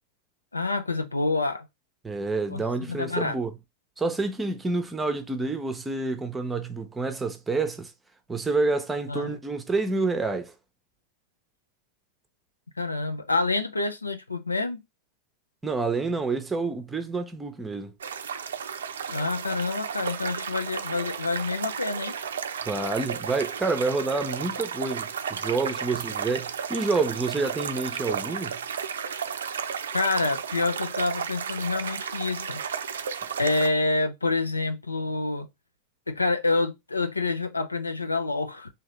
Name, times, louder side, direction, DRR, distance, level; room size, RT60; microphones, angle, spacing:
voice 1, 0.5-1.7 2.5-3.4 9.1-9.3 12.8-14.8 19.1-22.2 29.9-32.6 33.0-33.1 33.4-35.5 36.1-38.7, left 3 dB, 80° left, 0.5 m, -27 dB
voice 2, 2.0-3.5 4.0-7.9 8.3-10.5 15.6-17.9 22.6-28.6, right 3 dB, 10° right, 0.7 m, -28 dB
sound 1, 18.0-33.7, right 7 dB, 65° right, 0.5 m, -33 dB
3.7 x 2.8 x 3.2 m
figure-of-eight pair, 90°, 0 cm